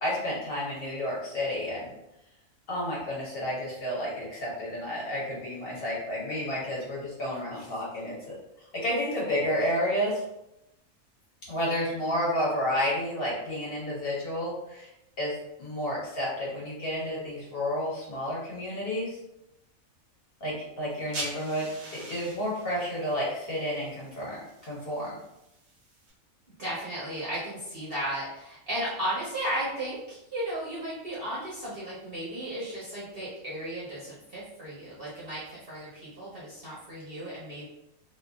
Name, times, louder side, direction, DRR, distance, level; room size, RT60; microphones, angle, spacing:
voice 1, 0.0-1.9 2.7-8.3 8.8-10.2 11.5-14.9 15.2-19.2 20.4-25.1, equal, 45° left, -6 dB, 1.3 m, -31 dB
sound 1, 20.9-26.1, right 2 dB, 80° right, 1.3 m, -44 dB
voice 2, 26.6-37.7, right 1 dB, 45° right, -9 dB, 1.0 m, -35 dB
2.9 x 2.6 x 2.3 m, 0.85 s
omnidirectional pair, 1.4 m